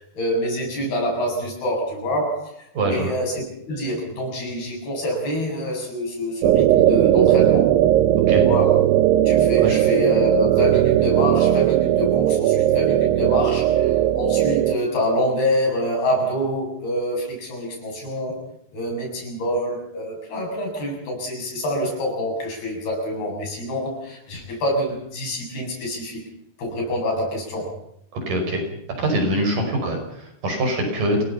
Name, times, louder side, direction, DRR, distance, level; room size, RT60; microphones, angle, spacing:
voice 1, 0.1-7.7 8.4-8.8 9.2-18.4 18.7-26.2 26.6-27.7, equal, 70° left, 0 dB, 9.8 m, -26 dB
voice 2, 2.7-3.1 8.3-8.4 9.6-9.8 28.1-28.6 29.0-31.2, right 1 dB, 55° right, 3 dB, 7.0 m, -23 dB
sound 1, 6.4-14.8, right 12 dB, 90° right, 3.0 m, -18 dB
28.0 x 18.5 x 5.7 m, 0.76 s
omnidirectional pair, 4.6 m